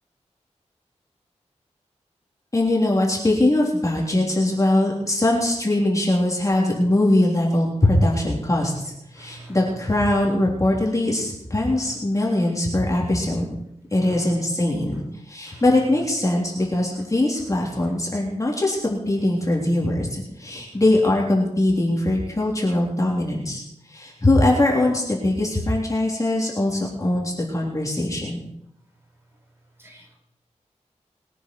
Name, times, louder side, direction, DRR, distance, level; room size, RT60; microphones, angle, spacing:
voice 1, 2.5-13.6 13.9-23.6 23.9-28.4, left 1 dB, 25° left, -2 dB, 3.4 m, -21 dB
voice 2, 9.2-9.6 15.5-15.6 20.7-20.8 29.8-30.2, right 2 dB, 20° right, -1 dB, 5.5 m, -46 dB
21.5 x 9.9 x 4.7 m, 0.80 s
wide cardioid pair, 80°, 12 cm